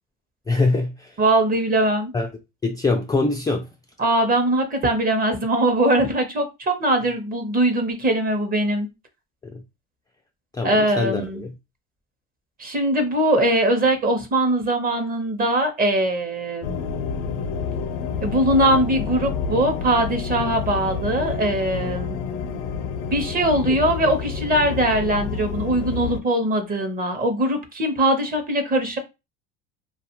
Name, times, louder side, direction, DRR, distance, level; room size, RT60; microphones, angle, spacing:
voice 1, 0.5-1.2 2.1-2.3 2.6-3.7 9.4-9.6 10.5-11.5, left 3 dB, 15° left, 0.3 m, -23 dB
voice 2, 1.2-2.1 4.0-8.9 10.6-11.4 12.6-16.8 18.2-22.2 23.1-29.0, right 1 dB, 30° right, 0.8 m, -21 dB
sound 1, 16.6-26.2, left 6 dB, 75° left, 0.6 m, -29 dB
2.4 x 2.4 x 2.9 m
supercardioid pair, 100°, 30 cm